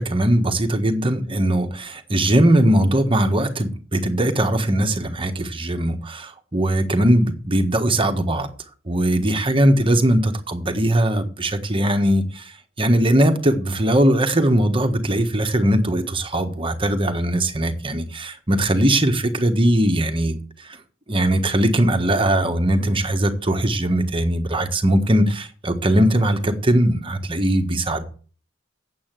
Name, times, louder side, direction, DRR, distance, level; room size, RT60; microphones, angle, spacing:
voice 1, 0.0-8.5 8.9-12.4 12.8-20.3 21.1-28.0, right 1 dB, 25° right, 1.4 m, -20 dB
8.8 x 7.9 x 7.5 m
head